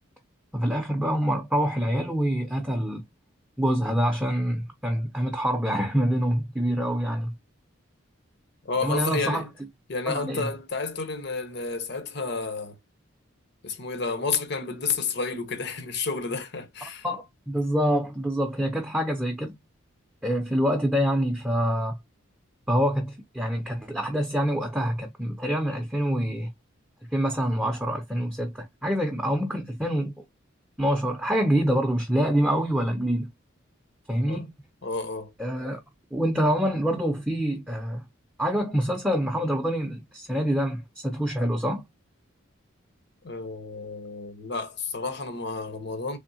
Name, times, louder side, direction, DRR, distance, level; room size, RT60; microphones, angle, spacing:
voice 1, 0.5-3.0 3.6-7.3 8.8-9.5 10.1-10.5 17.0-19.6 20.2-22.0 22.7-26.5 27.1-30.2 30.8-33.3 34.1-34.5 35.4-35.8 36.1-38.0 38.4-41.8, equal, 5° right, 0.6 m, -26 dB
voice 2, 8.6-9.5 9.9-12.8 13.6-17.0 34.3-34.4 34.8-35.3 43.2-46.2, left 4 dB, 55° left, 0.8 m, -31 dB
3.5 x 3.4 x 2.7 m
head